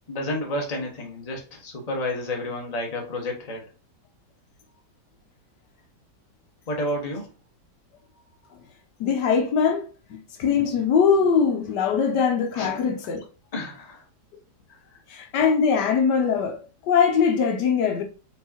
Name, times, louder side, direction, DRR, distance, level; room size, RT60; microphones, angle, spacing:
voice 1, 0.1-3.6 6.7-7.3 12.5-12.7 13.5-14.0 14.7-15.0, left 1 dB, 25° left, 1.0 m, -30 dB
voice 2, 9.0-13.2 15.1-16.6 16.9-18.0, left 6 dB, 80° left, 1.4 m, -22 dB
4.6 x 4.0 x 2.8 m
omnidirectional pair, 1.8 m